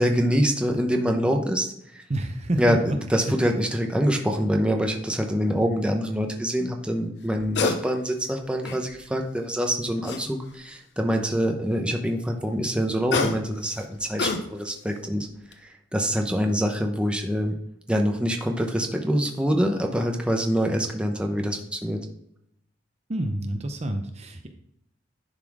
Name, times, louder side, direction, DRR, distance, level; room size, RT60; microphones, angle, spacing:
voice 1, 0.0-2.0 2.6-15.3 15.6-17.6 17.9-22.0, equal, 5° right, 2 dB, 0.9 m, -25 dB
voice 2, 2.1-3.0 23.1-24.5, right 1 dB, 35° right, 5 dB, 0.7 m, -28 dB
sound 1, 4.4-4.6 7.3-7.8 8.2-9.0 10.0-10.7 12.8-14.8 15.3-15.5, left 4 dB, 70° left, 0.9 m, -29 dB
10.5 x 4.1 x 4.8 m, 0.75 s
head